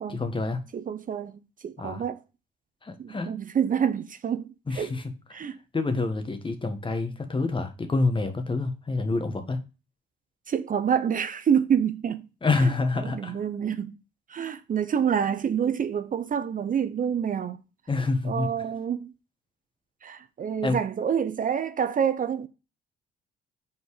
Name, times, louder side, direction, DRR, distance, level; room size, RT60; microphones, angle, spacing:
voice 1, 0.1-0.6 1.8-2.0 2.8-3.3 4.7-5.1 5.7-9.6 12.4-13.4 17.9-18.5 20.6-20.8, left 3 dB, 25° left, 1.4 m, -27 dB
voice 2, 0.7-2.2 3.0-4.9 5.3-5.6 10.5-12.2 12.6-14.0 14.3-17.6 18.2-19.1 20.0-22.5, right 8 dB, 45° right, 0.6 m, -27 dB
5.8 x 4.4 x 4.8 m
cardioid pair, 90°, 20 cm